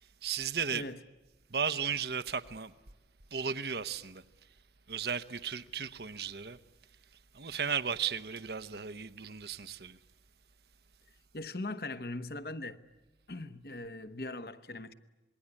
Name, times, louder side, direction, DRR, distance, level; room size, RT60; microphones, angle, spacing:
voice 1, 0.2-0.9 1.5-2.7 3.3-4.2 4.9-6.6 7.3-10.0, right 6 dB, 65° right, 1.0 m, -35 dB
voice 2, 11.3-12.8 13.3-14.9, left 2 dB, 60° left, 1.1 m, -40 dB
26.5 x 21.5 x 9.8 m
head